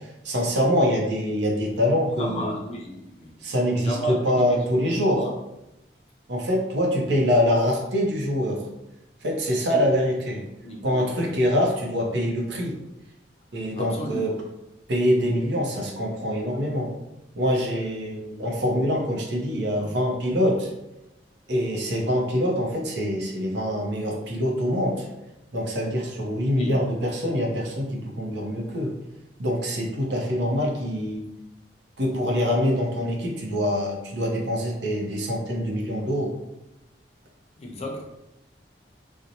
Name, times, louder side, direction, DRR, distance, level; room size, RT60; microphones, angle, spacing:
voice 1, 0.0-2.5 3.4-5.2 6.3-8.6 9.2-10.4 10.8-12.8 13.5-14.3 14.9-16.9 17.4-20.7 21.5-25.1 25.5-28.9 29.4-31.2 32.0-36.3, equal, 80° right, -1 dB, 0.6 m, -24 dB
voice 2, 2.2-3.3 3.8-5.4 9.7-9.8 10.6-11.3 13.7-14.2 19.8-19.9 26.5-26.8 37.6-38.0, equal, 35° left, 0 dB, 0.4 m, -33 dB
2.6 x 2.1 x 2.8 m, 0.92 s
head